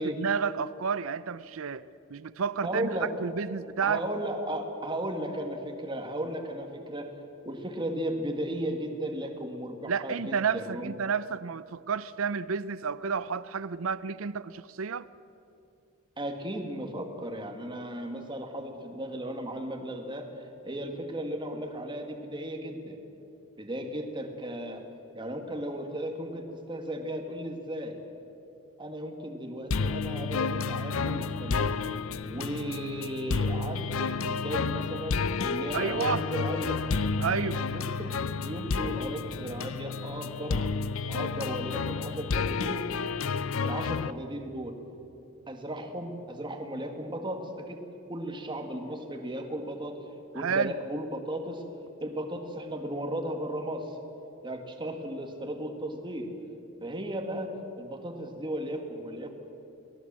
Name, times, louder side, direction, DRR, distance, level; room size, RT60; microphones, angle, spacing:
voice 1, 0.0-1.9 2.1-2.9 3.2-4.0 9.8-15.1 35.7-36.2 37.2-37.7 50.4-50.8, right 6 dB, 70° right, 17 dB, 0.5 m, -30 dB
voice 2, 2.6-3.1 3.8-7.1 7.4-10.9 16.2-20.3 20.6-23.0 23.6-24.8 25.1-28.0 28.8-31.7 32.3-36.8 37.7-38.2 38.4-40.7 41.1-42.9 43.6-44.8 45.5-47.8 48.1-50.0 50.3-51.6 52.0-54.0 54.4-56.3 56.8-59.3, right 1 dB, 25° right, 4 dB, 1.8 m, -35 dB
sound 1, 29.7-44.1, left 4 dB, 75° left, 0.6 m, -31 dB
23.5 x 17.5 x 7.5 m, 2.7 s
head